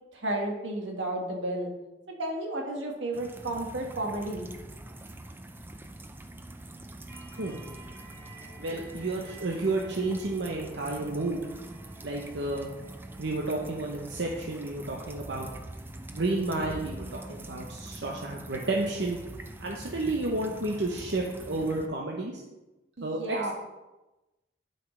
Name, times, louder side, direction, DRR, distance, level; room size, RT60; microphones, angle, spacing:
voice 1, 0.1-1.7 2.2-4.5 23.0-23.5, right 1 dB, 85° right, 0 dB, 1.7 m, -32 dB
sound 1, 3.1-21.9, right 1 dB, 10° right, 0.4 m, -44 dB
sound 2, 7.1-13.6, right 3 dB, 50° right, 2.8 m, -52 dB
voice 2, 8.6-11.5 12.0-12.7 13.2-15.5 16.1-19.2 19.6-22.4 23.0-23.5, right 2 dB, 65° right, 0 dB, 0.9 m, -31 dB
11.5 x 5.6 x 3.3 m, 1.0 s
head